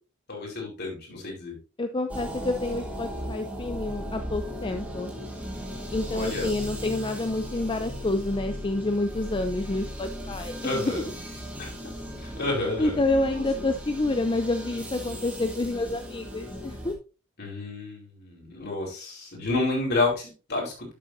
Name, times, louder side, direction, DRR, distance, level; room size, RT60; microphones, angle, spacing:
voice 1, 0.3-1.6 6.1-6.5 10.6-11.1 11.6-11.7 12.2-13.6 17.4-20.9, left 2 dB, 50° left, -1 dB, 4.6 m, -30 dB
voice 2, 1.8-5.1 5.9-11.0 12.4-16.9, left 2 dB, 25° left, 7 dB, 0.5 m, -28 dB
sound 1, 2.1-16.9, equal, 5° right, 2.8 m, -37 dB
11.5 x 7.2 x 2.7 m, 0.34 s
head